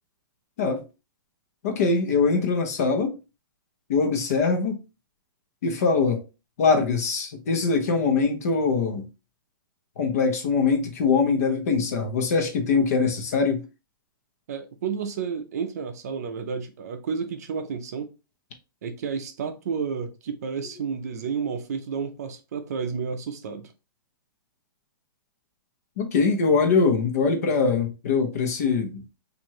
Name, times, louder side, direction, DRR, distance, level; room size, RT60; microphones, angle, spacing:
voice 1, 1.6-3.1 3.9-4.8 5.6-6.2 6.6-9.1 10.0-13.6 26.0-29.0, left 4 dB, 45° left, 0.9 m, -22 dB
voice 2, 14.5-18.1 18.8-23.7, right 6 dB, 45° right, 0.6 m, -31 dB
4.5 x 2.6 x 3.0 m
hypercardioid pair, 175°, 12 cm